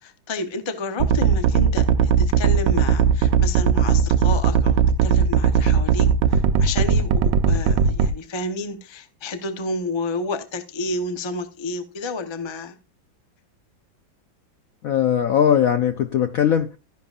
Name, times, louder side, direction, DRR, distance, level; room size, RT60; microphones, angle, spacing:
voice 1, 0.0-12.7, left 2 dB, 45° left, 0.3 m, -30 dB
sound 1, 1.0-8.1, right 7 dB, 70° right, 1.2 m, -17 dB
voice 2, 14.8-16.8, left 9 dB, 75° left, 0.8 m, -19 dB
13.0 x 10.5 x 2.4 m
omnidirectional pair, 2.1 m